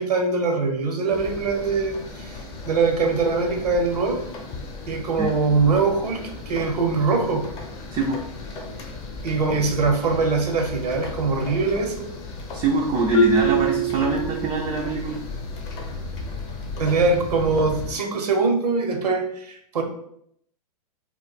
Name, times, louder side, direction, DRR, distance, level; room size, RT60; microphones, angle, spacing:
voice 1, 0.0-2.4 2.7-4.2 4.9-7.4 9.2-12.1 16.8-19.8, right 4 dB, 80° right, 3 dB, 0.7 m, -22 dB
sound 1, 1.1-17.9, left 3 dB, 30° left, 0.8 m, -36 dB
voice 2, 7.9-8.2 12.5-15.3, right 4 dB, 20° right, -1 dB, 0.3 m, -24 dB
Marimba xylophone, 13.1-14.9, right 1 dB, 90° left, 0.4 m, -23 dB
2.4 x 2.1 x 3.9 m, 0.70 s
hypercardioid pair, 115°, 20 cm